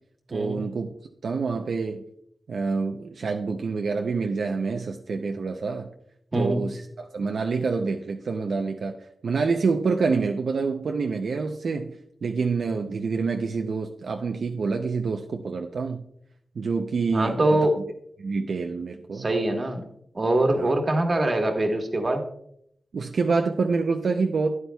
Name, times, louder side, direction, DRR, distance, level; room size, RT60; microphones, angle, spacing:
voice 1, 0.3-0.9 1.2-2.0 2.5-5.9 6.3-9.0 9.2-16.0 16.6-17.4 18.2-19.3 20.6-20.7 22.9-24.5, right 4 dB, 75° right, 0.6 m, -27 dB
voice 2, 17.1-17.8 19.1-19.9 20.1-22.2, right 1 dB, 40° right, 1.4 m, -23 dB
12.5 x 9.7 x 2.3 m
wide cardioid pair, 90°, 0 cm